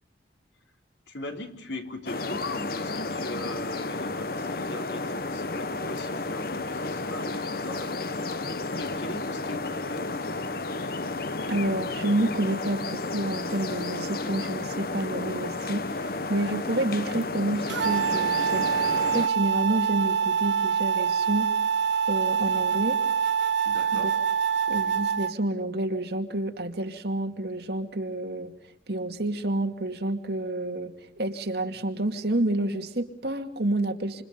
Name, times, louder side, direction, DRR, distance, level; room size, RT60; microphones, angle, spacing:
voice 1, 1.1-10.1 23.7-24.1, left 1 dB, 75° left, 4 dB, 3.7 m, -40 dB
sound 1, 2.1-19.3, left 3 dB, 55° left, 1.0 m, -32 dB
voice 2, 11.5-18.7 19.1-21.5 22.1-23.0 23.9-24.2 24.7-28.5 28.9-34.2, right 1 dB, 60° right, 5 dB, 2.5 m, -29 dB
sound 2, 17.7-25.3, right 7 dB, 80° right, 1.1 m, -25 dB
28.0 x 28.0 x 5.2 m, 0.73 s
head